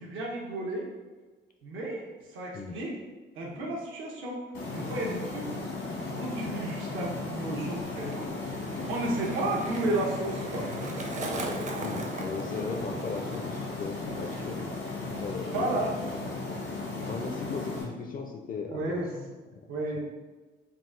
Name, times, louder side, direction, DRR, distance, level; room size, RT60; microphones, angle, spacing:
voice 1, 0.0-0.9 1.6-2.9 3.3-4.4 4.7-5.8 6.2-8.3 8.9-10.7 15.3-15.9 18.7-19.1 19.7-20.0, right 2 dB, 85° right, -2 dB, 1.0 m, -32 dB
sound 1, 4.5-17.8, left 3 dB, 80° left, 1.3 m, -36 dB
Skateboard, 7.3-14.8 15.0-15.5, right 2 dB, 40° right, 0.6 m, -40 dB
voice 2, 11.8-14.7 15.2-16.4 17.0-19.7 19.9-20.0, left 4 dB, 45° left, 3 dB, 0.5 m, -37 dB
3.9 x 2.4 x 3.8 m, 1.3 s
cardioid pair, 90°, 20 cm